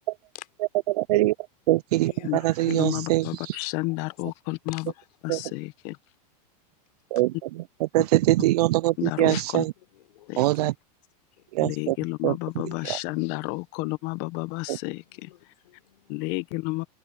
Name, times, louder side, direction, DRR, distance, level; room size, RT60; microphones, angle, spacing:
voice 1, 0.9-1.3 1.7-3.6 5.3-5.4 7.1-9.7 10.4-10.7 11.5-12.0 12.2-12.4 12.8-13.0 14.7-14.8, right 18 dB, 70° right, 0.4 m, -23 dB
voice 2, 2.0-3.4 3.8-4.2 4.7-5.1 9.8-10.6 11.4-11.5 15.1-16.2, left 15 dB, 80° left, 5.2 m, -47 dB
voice 3, 2.7-4.8 5.2-6.0 9.0-9.6 10.3-10.4 11.6-15.3 16.1-16.9, left 23 dB, 40° left, 1.1 m, -31 dB
supercardioid pair, 165°, 21 cm